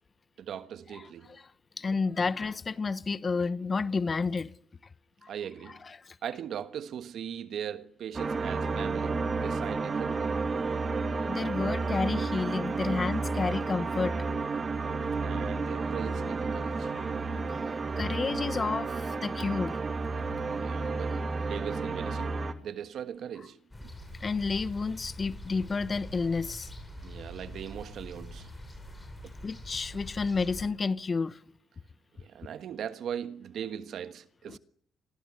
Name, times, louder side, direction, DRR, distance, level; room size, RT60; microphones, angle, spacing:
voice 1, 0.4-1.3 5.3-5.8 6.2-10.4 15.2-16.9 20.6-23.9 27.0-28.5 29.2-29.3 32.2-34.6, right 9 dB, 65° right, 1.4 m, -39 dB
voice 2, 1.8-4.5 5.2-5.3 6.0-6.1 11.3-14.2 16.9-17.1 18.0-19.8 20.8-20.9 24.2-26.7 29.4-31.4 34.5-34.6, left 4 dB, 30° left, 1.0 m, -30 dB
sound 1, 8.1-22.5, right 4 dB, 35° right, 2.3 m, -31 dB
sound 2, 23.7-30.7, equal, 10° left, 8.0 m, -44 dB
25.0 x 18.5 x 9.8 m
cardioid pair, 105°, 0 cm